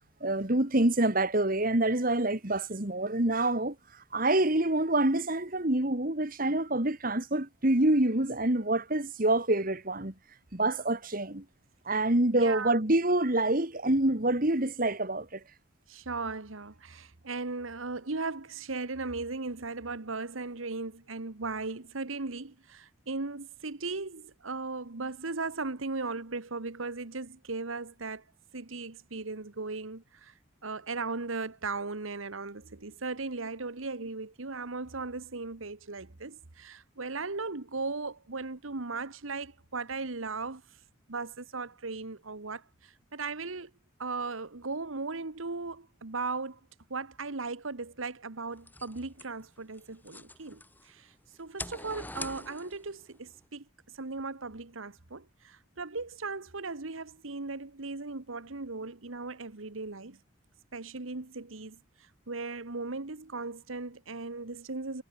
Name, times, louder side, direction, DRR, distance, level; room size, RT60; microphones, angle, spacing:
voice 1, 0.2-3.8 4.1-10.1 10.5-11.4 11.9-15.4, right 1 dB, 45° right, 2.2 m, -26 dB
voice 2, 12.4-12.7 15.9-28.2 28.5-30.3 30.6-40.6 41.1-43.7 44.0-46.6 46.9-51.1 51.4-53.6 53.9-60.2 60.7-65.0, right 3 dB, 85° right, 1.5 m, -37 dB
sound 1, 48.6-50.9 51.3-53.0, left 2 dB, 10° left, 6.3 m, -44 dB
head